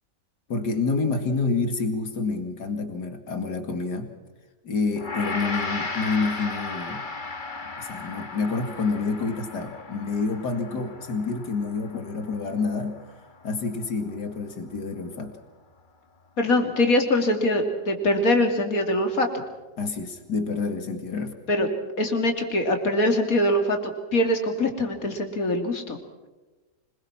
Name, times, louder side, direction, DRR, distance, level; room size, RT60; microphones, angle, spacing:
voice 1, 0.5-4.1 4.6-7.0 7.8-13.0 13.4-15.3 19.8-21.3, left 4 dB, 75° left, 7 dB, 2.7 m, -28 dB
Gong, 5.0-14.3, left 3 dB, 30° left, 1.8 m, -36 dB
voice 2, 16.4-19.3 21.5-21.7 22.0-23.8 24.1-26.0, left 1 dB, 55° left, 4 dB, 3.3 m, -23 dB
25.5 x 21.5 x 6.0 m, 1.2 s
omnidirectional pair, 1.8 m